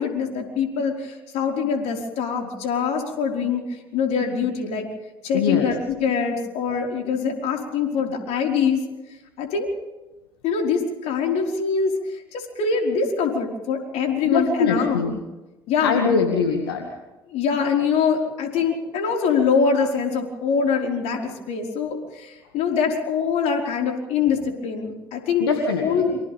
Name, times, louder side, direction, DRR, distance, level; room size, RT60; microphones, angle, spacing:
voice 1, 0.0-4.9 5.2-8.8 9.4-9.7 10.4-15.1 15.7-16.0 17.3-25.4 25.8-26.2, left 6 dB, 65° left, 2 dB, 5.1 m, -24 dB
voice 2, 5.3-5.7 14.2-15.2 15.8-16.9 25.4-26.1, left 5 dB, 85° left, 3 dB, 2.1 m, -22 dB
29.0 x 25.5 x 3.6 m, 1.1 s
hypercardioid pair, 55°, 12 cm